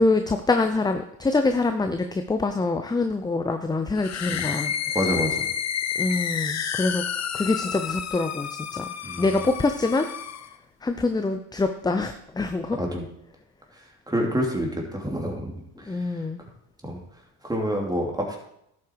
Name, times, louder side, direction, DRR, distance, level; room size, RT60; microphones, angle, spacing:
voice 1, 0.0-5.0 6.0-7.0 7.3-8.9 9.2-10.1 10.8-12.8 15.9-16.4, left 3 dB, 10° left, 7 dB, 0.6 m, -25 dB
sound 1, 4.0-10.5, left 8 dB, 35° left, 0.9 m, -30 dB
voice 2, 4.9-5.4 9.0-9.3 12.8-13.0 14.1-16.2 16.8-17.0 17.4-18.4, equal, 10° right, 0 dB, 3.1 m, -28 dB
11.5 x 8.6 x 4.7 m, 0.77 s
supercardioid pair, 95°, 46 cm